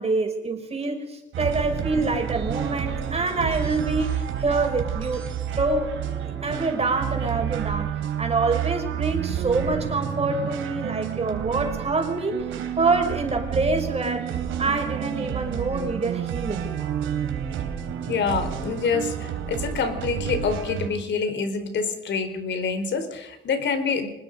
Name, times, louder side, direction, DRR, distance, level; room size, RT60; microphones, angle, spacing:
voice 1, 0.0-7.9 8.2-12.4 12.7-14.3 14.6-16.7, right 3 dB, 30° right, 3 dB, 6.0 m, -26 dB
sound 1, 1.3-20.9, right 9 dB, 85° right, 3.4 m, -30 dB
voice 2, 18.1-24.1, left 5 dB, 65° left, 8 dB, 4.2 m, -26 dB
25.5 x 20.5 x 5.3 m, 0.95 s
cardioid pair, 90°, 20 cm